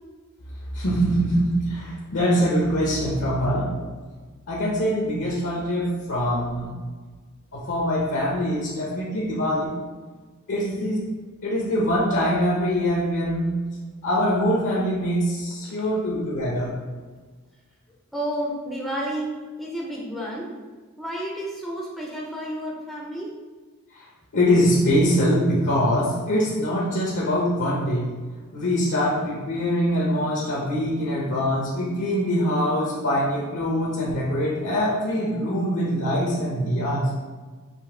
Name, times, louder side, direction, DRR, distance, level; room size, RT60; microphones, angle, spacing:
voice 1, 0.7-3.7 4.5-6.7 7.5-9.7 10.5-11.0 11.4-13.5 14.0-16.7 24.3-28.1 28.5-37.1, equal, 65° left, -5 dB, 0.8 m, -23 dB
voice 2, 15.6-15.9 16.9-17.1 18.1-19.3 19.6-20.7 21.0-23.3, right 1 dB, ahead, -4 dB, 0.5 m, -31 dB
5.2 x 2.7 x 3.7 m, 1.4 s
head